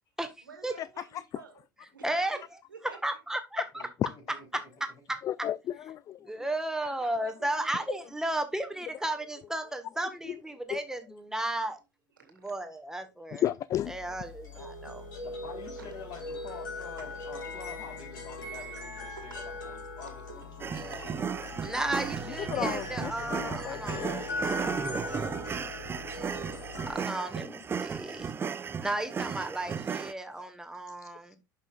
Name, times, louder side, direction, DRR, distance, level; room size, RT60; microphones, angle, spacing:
voice 1, 0.4-1.6 1.9-2.4 2.7-3.2 6.8-7.9 12.1-12.5 15.8-15.9 17.0-17.3 19.2-19.6 20.0-20.6 20.9-21.7 27.3-27.5, right 6 dB, 80° right, 2.1 m, -50 dB
voice 2, 2.0-2.4 3.0-3.8 4.5-4.6 5.1-5.2 6.2-11.8 12.4-13.4 13.9-15.0 21.6-24.6 26.9-27.4 27.8-28.3 28.8-31.4, right 1 dB, 5° right, 1.4 m, -34 dB
voice 3, 3.7-4.7 14.1-14.2 14.9-21.0, left 4 dB, 45° left, 3.8 m, -47 dB
voice 4, 5.2-6.3 10.2-10.4 10.7-10.8 13.3-13.9 14.6-14.7 22.3-24.3 30.3-30.5 31.0-31.4, left 11 dB, 30° left, 0.3 m, -33 dB
sound 1, 13.7-26.9, left 2 dB, 70° left, 3.1 m, -40 dB
sound 2, 20.6-30.1, right 6 dB, 20° right, 0.5 m, -35 dB
11.0 x 5.6 x 2.4 m
figure-of-eight pair, 70°, 11 cm